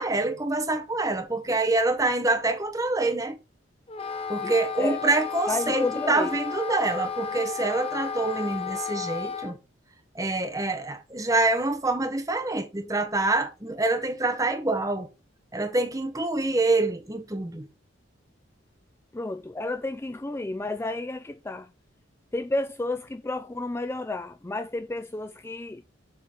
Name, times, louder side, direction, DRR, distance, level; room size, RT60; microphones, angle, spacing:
voice 1, 0.0-3.4 4.3-9.6 10.1-15.1 15.5-17.7, right 2 dB, 15° right, 1.1 m, -26 dB
Wind instrument woodwind instrument, 3.9-9.5, left 6 dB, 30° left, 0.8 m, -33 dB
voice 2, 4.4-5.0 5.5-6.4 19.1-21.7 22.3-25.8, left 2 dB, 15° left, 0.3 m, -31 dB
7.6 x 4.0 x 6.6 m
head